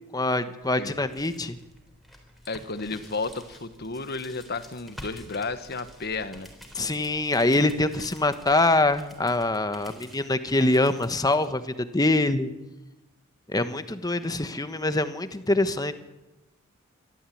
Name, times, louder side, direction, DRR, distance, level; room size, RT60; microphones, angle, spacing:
voice 1, 0.1-1.6 6.7-12.5 13.5-15.9, left 2 dB, 20° left, 10 dB, 1.2 m, -24 dB
sound 1, 0.6-11.5, equal, ahead, 3.8 m, -49 dB
voice 2, 2.5-6.5, left 3 dB, 50° left, 11 dB, 1.4 m, -33 dB
24.0 x 14.0 x 8.6 m, 1.0 s
head